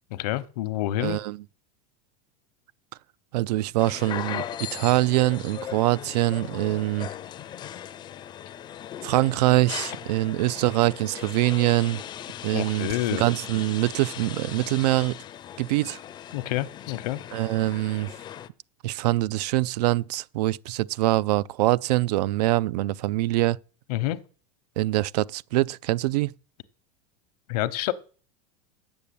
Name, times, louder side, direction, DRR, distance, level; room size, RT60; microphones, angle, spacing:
voice 1, 0.1-1.2 12.5-13.3 16.3-17.2 23.9-24.2 27.5-27.9, left 15 dB, 75° left, 0.9 m, -28 dB
voice 2, 1.0-1.4 3.3-7.1 9.0-12.0 12.4-15.2 15.6-16.0 17.3-18.1 18.8-23.6 24.8-26.3, right 17 dB, 80° right, 0.4 m, -24 dB
sound 1, 3.8-18.5, left 10 dB, 20° left, 0.4 m, -38 dB
8.2 x 7.1 x 8.5 m
supercardioid pair, 155°, 20 cm